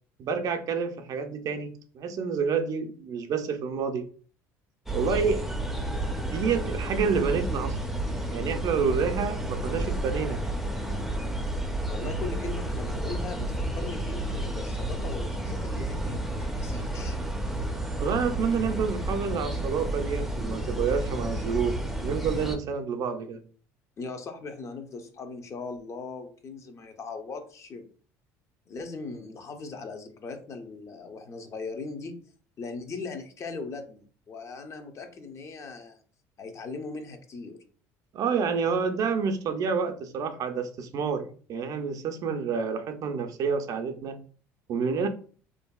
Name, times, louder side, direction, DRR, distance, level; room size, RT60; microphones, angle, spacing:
voice 1, 0.2-4.0 4.9-5.4 5.8-5.9 6.3-7.8 8.3-10.4 18.0-23.4 38.1-44.2 44.7-45.1, right 5 dB, 55° right, 7 dB, 0.5 m, -28 dB
sound 1, 4.9-22.6, right 1 dB, ahead, 0.5 m, -31 dB
voice 2, 11.9-17.2 24.0-27.9 28.7-32.2 32.6-36.0 36.4-37.6, left 4 dB, 40° left, 6 dB, 0.6 m, -39 dB
2.8 x 2.6 x 2.2 m, 0.42 s
supercardioid pair, 85°, 7 cm